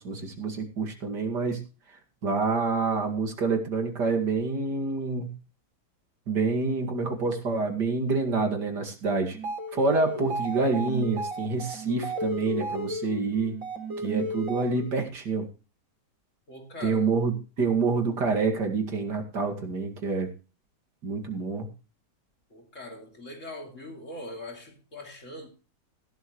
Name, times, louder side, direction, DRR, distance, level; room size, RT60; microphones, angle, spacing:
voice 1, 0.0-1.6 2.2-5.3 6.3-9.4 9.7-13.5 14.0-15.5 16.8-20.3 21.0-21.7, right 4 dB, 65° right, 2.8 m, -27 dB
sound 1, 9.3-15.1, right 1 dB, 50° right, 4.0 m, -34 dB
voice 2, 16.5-17.1 22.5-25.5, left 1 dB, 45° left, 3.2 m, -41 dB
16.0 x 12.0 x 3.2 m
omnidirectional pair, 1.9 m